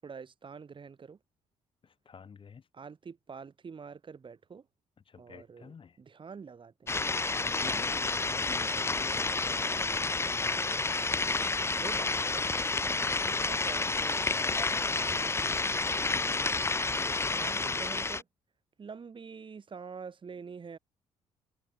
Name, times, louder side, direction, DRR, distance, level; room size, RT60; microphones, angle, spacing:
voice 1, 0.0-1.2 2.7-4.7 5.2-6.9 7.7-8.0 8.2-8.4 11.8-12.5 13.3-16.0 17.0-18.3 18.8-20.8, right 5 dB, 40° right, 7.3 m, -47 dB
voice 2, 1.8-2.7 5.1-6.0 7.4-9.8, left 6 dB, 45° left, 3.0 m, -49 dB
sound 1, 6.9-18.2, left 3 dB, 20° left, 1.0 m, -30 dB
supercardioid pair, 70°, 13 cm